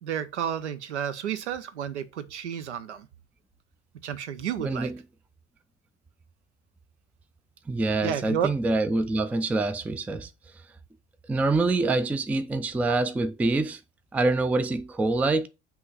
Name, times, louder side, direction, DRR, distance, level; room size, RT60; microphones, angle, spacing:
voice 1, 0.0-3.1 4.0-4.9 8.0-8.5, right 9 dB, 75° right, 0.8 m, -31 dB
voice 2, 4.6-5.0 7.7-10.3 11.3-13.8 14.1-15.5, right 2 dB, 5° right, 0.3 m, -25 dB
7.6 x 2.9 x 5.5 m
figure-of-eight pair, 65°, 35 cm